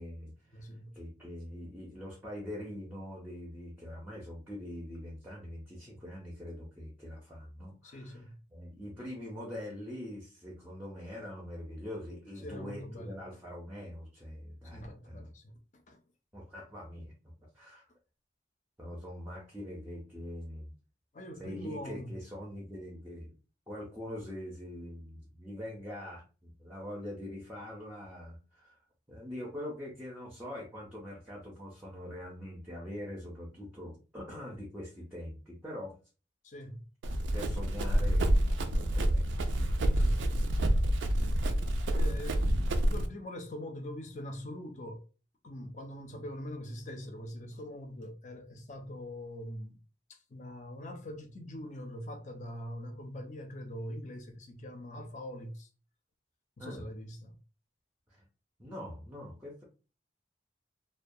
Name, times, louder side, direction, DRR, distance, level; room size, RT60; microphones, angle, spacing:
voice 1, 0.0-15.3 16.3-17.1 17.5-17.8 18.8-20.7 21.4-23.3 23.7-28.8 29.1-35.9 37.1-40.4 56.6-56.8 58.1-58.3 58.6-59.6, left 1 dB, 10° right, 0.5 m, -43 dB
voice 2, 0.5-0.9 7.8-8.4 12.4-13.2 14.6-16.0 17.0-17.1 21.1-22.1 36.4-36.9 40.0-40.8 41.9-45.1 45.4-49.8 50.1-55.7 56.6-57.4, equal, 40° left, 0.4 m, -43 dB
Run, 37.0-43.1, right 1 dB, 85° right, 0.4 m, -28 dB
2.3 x 2.2 x 2.6 m
head